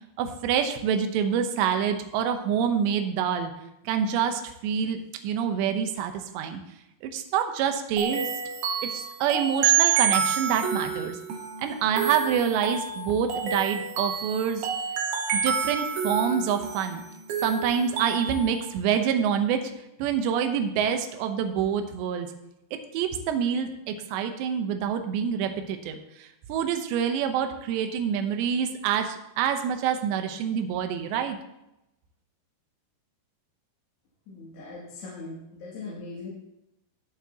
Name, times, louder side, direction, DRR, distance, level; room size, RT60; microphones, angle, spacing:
voice 1, 0.2-3.5 3.9-6.6 7.0-8.3 8.8-11.2 11.6-14.7 15.4-17.0 17.4-19.7 20.0-22.3 22.9-31.4, right 8 dB, 85° right, 6 dB, 3.1 m, -27 dB
sound 1, 8.0-18.6, right 7 dB, 65° right, 3.2 m, -28 dB
voice 2, 34.3-36.3, left 3 dB, 75° left, -7 dB, 4.5 m, -40 dB
20.0 x 7.5 x 2.9 m, 0.87 s
omnidirectional pair, 5.0 m